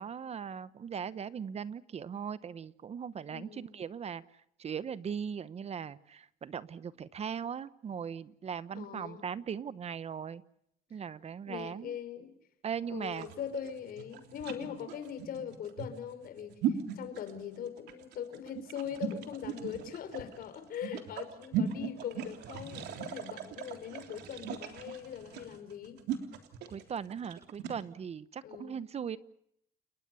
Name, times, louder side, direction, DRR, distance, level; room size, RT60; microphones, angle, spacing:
voice 1, 0.0-4.2 4.6-10.4 10.9-12.0 12.6-13.3 26.7-29.2, right 7 dB, 40° right, 17 dB, 0.9 m, -39 dB
voice 2, 3.3-3.7 8.7-9.3 11.5-12.4 12.9-26.0 28.4-28.8, left 8 dB, 60° left, 9 dB, 4.9 m, -41 dB
sound 1, 13.1-27.8, right 9 dB, 80° right, 3.4 m, -38 dB
30.0 x 19.5 x 6.9 m, 0.73 s
cardioid pair, 110°, 17 cm